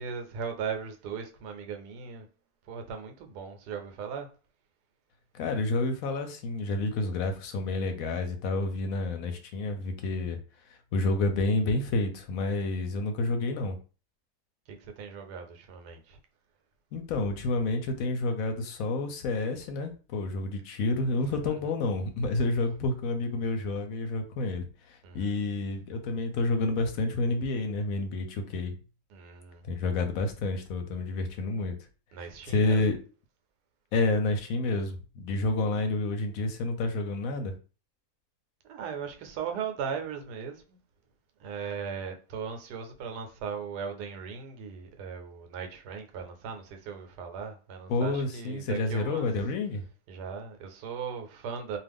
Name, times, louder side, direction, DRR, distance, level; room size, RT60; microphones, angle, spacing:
voice 1, 0.0-2.3 2.7-4.3 14.7-16.2 21.5-21.6 25.0-25.3 29.1-29.6 32.1-32.9 38.7-40.8 41.4-49.3 50.1-51.8, right 6 dB, 85° right, 1.2 m, -38 dB
voice 2, 5.3-10.4 10.9-13.8 16.9-28.8 29.6-31.8 32.2-33.0 33.9-37.5 47.9-49.8, left 2 dB, 70° left, 0.9 m, -29 dB
2.5 x 2.4 x 3.4 m
omnidirectional pair, 1.7 m